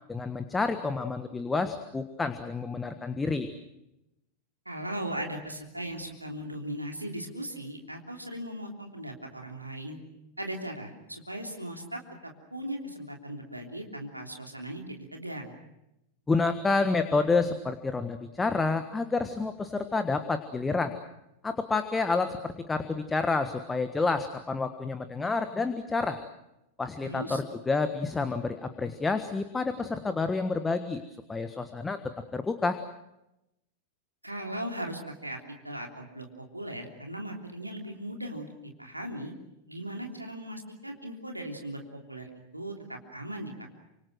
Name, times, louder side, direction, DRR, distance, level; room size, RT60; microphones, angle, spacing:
voice 1, 0.1-3.5 16.3-21.0 21.4-26.2 26.8-31.0 31.3-32.0 32.3-32.8, left 3 dB, 10° left, 9 dB, 1.5 m, -29 dB
voice 2, 4.6-10.0 10.4-15.5 27.0-27.4 34.2-39.3 39.7-41.8 42.1-43.7, right 1 dB, 85° right, 2 dB, 3.3 m, -38 dB
28.5 x 26.0 x 6.4 m, 0.89 s
figure-of-eight pair, 90°, 0 cm